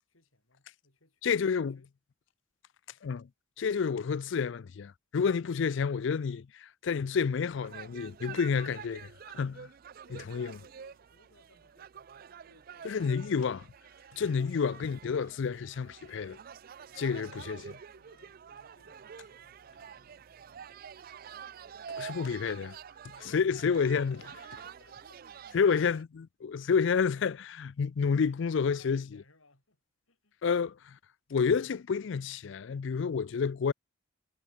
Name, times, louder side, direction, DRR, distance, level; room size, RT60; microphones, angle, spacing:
voice 1, 0.1-1.2 1.7-1.9 10.0-13.1 16.8-20.7 23.9-25.5 28.5-29.8 30.1-30.4, left 2 dB, 80° left, 7.8 m, -64 dB
voice 2, 1.2-1.8 3.0-3.3 3.6-9.7 10.3-10.5 12.8-13.7 14.1-16.4 17.0-17.6 22.0-22.8 23.2-24.2 25.5-29.0 30.4-31.0 31.3-33.7, left 6 dB, 60° left, 0.4 m, -29 dB
sound 1, 7.6-26.0, right 7 dB, 45° right, 0.4 m, -48 dB
head